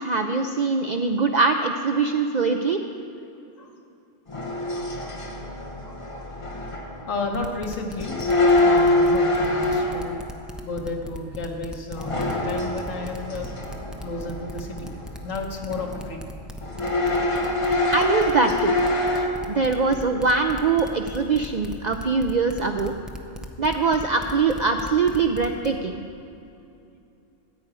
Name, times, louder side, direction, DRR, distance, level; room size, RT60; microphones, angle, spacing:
voice 1, 0.0-2.8 17.9-18.7 19.5-22.9 23.6-26.0, right 4 dB, 65° right, 5 dB, 0.4 m, -22 dB
sound 1, 4.3-7.2 8.0-10.3 12.0-15.4 15.7-16.1 16.6-19.3, left 2 dB, 30° left, 0.9 m, -25 dB
voice 2, 4.7-5.1 5.8-6.3 7.1-8.2 8.4-10.1 10.6-13.5 14.0-14.9 15.2-16.2 19.7-19.8 20.4-20.5 20.8-21.5, left 3 dB, 80° left, 1 dB, 1.5 m, -33 dB
sound 2, 7.3-25.7, equal, ahead, 0.4 m, -38 dB
13.5 x 4.9 x 8.8 m, 2.7 s
omnidirectional pair, 1.3 m